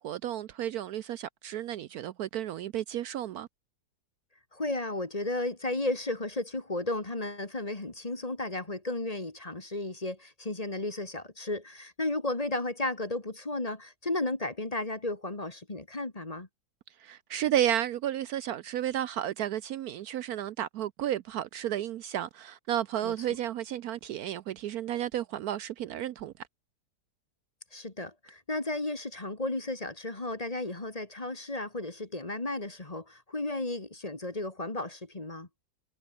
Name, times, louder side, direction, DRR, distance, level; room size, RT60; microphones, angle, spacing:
voice 1, 0.0-3.5 17.0-26.3, right 11 dB, 70° right, 1.1 m, -32 dB
voice 2, 4.5-16.5 23.0-23.1 27.7-35.5, left 2 dB, 20° left, 1.8 m, -34 dB
omnidirectional pair, 1.8 m